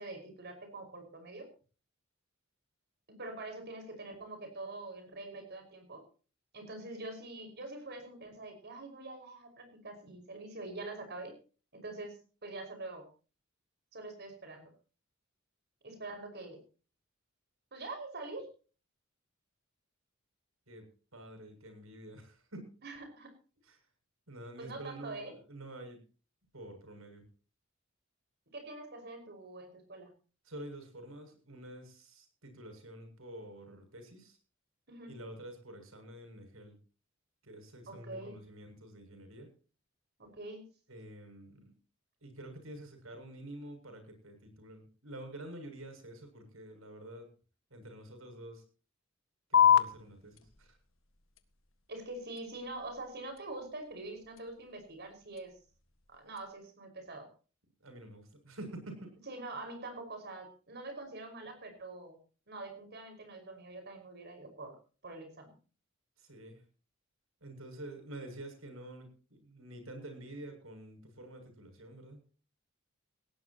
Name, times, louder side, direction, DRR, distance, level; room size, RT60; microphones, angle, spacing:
voice 1, 0.0-1.5 3.1-6.0 6.5-11.3 11.7-12.1 12.4-13.0 13.9-14.7 15.8-16.6 17.7-18.5 22.8-23.3 24.6-25.3 28.5-30.1 34.9-35.1 37.9-38.4 40.2-40.6 51.9-55.5 56.1-57.3 59.3-62.2 62.5-64.7 65.0-65.5, right 2 dB, 55° right, 5 dB, 5.5 m, -44 dB
voice 2, 20.7-22.8 23.6-23.8 24.3-26.0 26.5-27.3 30.4-34.4 35.1-36.8 37.4-39.5 40.9-41.7 42.2-47.3 47.7-48.6 49.5-50.8 57.8-59.1 66.2-66.6 67.4-72.2, right 1 dB, 85° right, 6 dB, 7.2 m, -48 dB
sound 1, 49.5-56.5, left 8 dB, 70° left, 1.8 m, -33 dB
19.0 x 18.0 x 3.0 m, 0.38 s
head